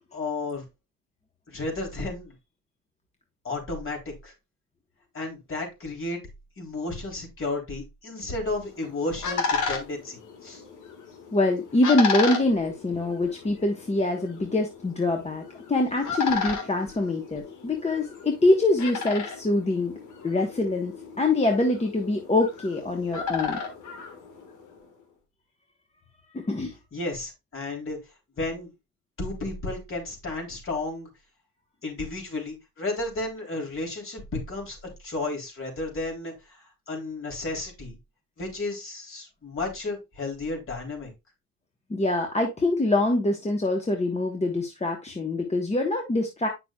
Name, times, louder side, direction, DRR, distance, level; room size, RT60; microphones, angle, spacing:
voice 1, 0.1-0.6 1.5-2.3 3.4-4.3 5.1-6.2 6.6-10.6 26.9-28.0 28.4-28.7 29.2-31.1 31.8-38.0 38.4-41.1, left 2 dB, 45° left, 1 dB, 3.4 m, -33 dB
sound 1, 8.6-24.8, left 5 dB, 80° left, 1.8 m, -34 dB
voice 2, 11.3-19.9 20.2-23.6 26.3-26.7 41.9-46.5, left 2 dB, 20° left, 2 dB, 1.2 m, -24 dB
8.5 x 5.9 x 2.3 m, 0.23 s
cardioid pair, 90°, 30 cm